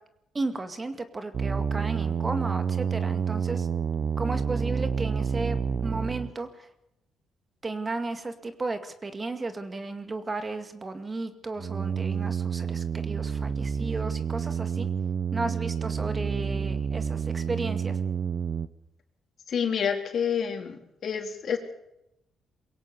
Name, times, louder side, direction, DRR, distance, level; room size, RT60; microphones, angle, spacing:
voice 1, 0.3-3.7 4.2-6.5 7.6-14.9 15.3-18.0, right 3 dB, 25° right, 8 dB, 2.1 m, -34 dB
sound 1, 1.3-6.3 11.6-18.7, right 6 dB, 50° right, 1.0 m, -29 dB
voice 2, 19.5-21.6, left 7 dB, 55° left, 3 dB, 3.9 m, -28 dB
22.5 x 17.0 x 6.9 m, 0.82 s
cardioid pair, 90°, 0 cm